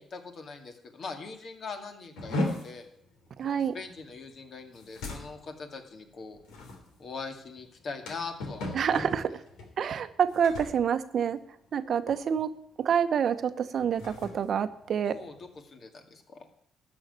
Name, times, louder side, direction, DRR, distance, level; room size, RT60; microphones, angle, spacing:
voice 1, 0.0-2.9 3.4-6.4 7.0-8.8 15.0-16.5, left 4 dB, 55° left, 5 dB, 2.3 m, -42 dB
sound 1, 2.2-11.8 12.1-12.5 12.8-13.1 13.7-15.6, left 2 dB, 90° left, 3.4 m, -38 dB
voice 2, 3.4-3.7 8.7-9.3 9.8-11.4 11.7-12.5 12.8-15.2, right 7 dB, 60° right, 12 dB, 0.9 m, -27 dB
13.5 x 6.3 x 9.4 m, 0.70 s
cardioid pair, 90°, 0 cm